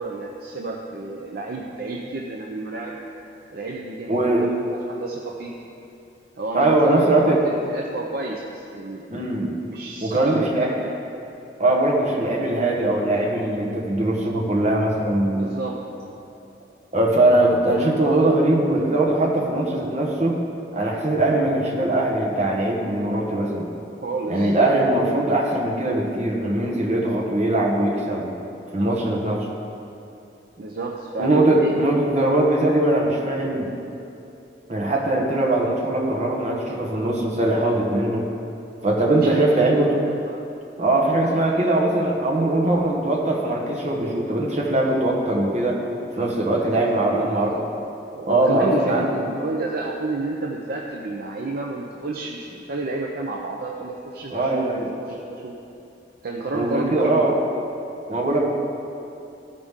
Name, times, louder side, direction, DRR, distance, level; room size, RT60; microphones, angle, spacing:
voice 1, 0.0-3.0 3.5-5.5 6.4-9.1 9.7-10.9 15.3-15.8 24.0-24.5 30.6-31.7 39.0-40.5 41.3-41.4 46.6-47.6 48.1-55.5 56.2-57.3, right 2 dB, 60° right, -1 dB, 0.6 m, -31 dB
voice 2, 4.1-4.5 6.5-7.4 9.1-9.5 10.0-10.7 11.6-15.5 16.9-20.4 20.7-23.7 24.3-28.3 28.7-29.5 31.2-33.7 34.7-38.3 38.8-40.0 40.8-45.8 46.2-47.6 48.2-49.1 54.3-54.9 56.5-57.3 58.1-58.4, right 1 dB, 40° right, -2 dB, 1.3 m, -21 dB
14.5 x 5.0 x 3.6 m, 2.8 s
head